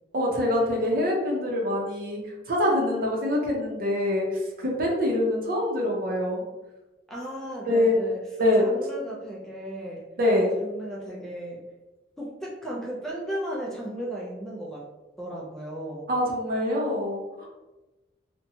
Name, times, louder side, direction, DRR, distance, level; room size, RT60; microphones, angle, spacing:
voice 1, 0.1-2.2 2.5-6.4 7.7-8.0 8.4-8.6 10.2-10.5 16.1-17.5, left 1 dB, 55° right, -1 dB, 0.6 m, -24 dB
voice 2, 7.1-8.2 8.6-10.0 10.6-11.6 12.2-14.9 15.2-16.1, right 1 dB, 5° left, -4 dB, 0.4 m, -35 dB
2.7 x 2.1 x 2.7 m, 1.1 s
head